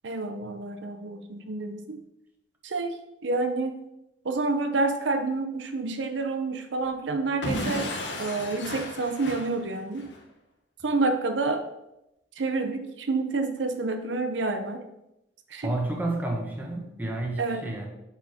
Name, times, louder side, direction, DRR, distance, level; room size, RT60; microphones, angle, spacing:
voice 1, 0.0-2.0 2.6-2.9 3.2-3.8 4.2-7.9 8.2-10.1 10.8-11.6 12.4-14.8 15.5-15.7 17.4-17.6, right 3 dB, 75° right, 6 dB, 0.6 m, -28 dB
Explosion / Shatter, 7.4-10.2, left 1 dB, 70° left, 1.2 m, -33 dB
voice 2, 15.6-17.9, right 2 dB, 10° right, 0 dB, 1.0 m, -30 dB
6.1 x 4.3 x 4.9 m, 0.89 s
head